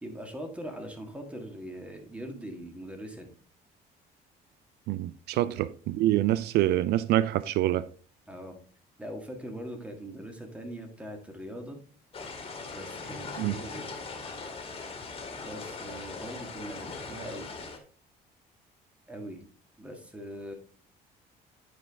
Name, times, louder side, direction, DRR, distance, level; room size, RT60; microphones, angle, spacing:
voice 1, 0.0-3.3 5.3-5.5 8.3-8.6 9.0-11.8 12.7-13.8 15.4-17.5 19.1-19.5 19.8-20.5, equal, 5° right, 1.8 m, -41 dB
voice 2, 4.9-7.9 13.4-13.6, right 14 dB, 75° right, 0.4 m, -26 dB
sound 1, 12.1-17.8, left 4 dB, 30° left, 2.0 m, -40 dB
9.9 x 4.7 x 3.5 m
cardioid pair, 110°, 17 cm